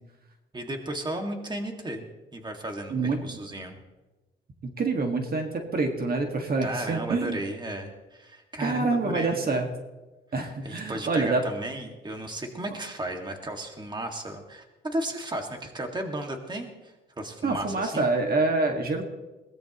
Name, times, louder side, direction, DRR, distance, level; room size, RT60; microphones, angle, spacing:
voice 1, 0.5-2.0 2.3-3.7 6.6-9.4 10.6-18.1, right 1 dB, 20° right, 3 dB, 2.0 m, -34 dB
voice 2, 2.9-3.4 4.6-7.5 8.6-9.7 10.3-11.4 17.4-19.0, right 3 dB, 45° right, 3 dB, 1.9 m, -26 dB
22.0 x 17.5 x 3.0 m, 1.1 s
cardioid pair, 105°, 21 cm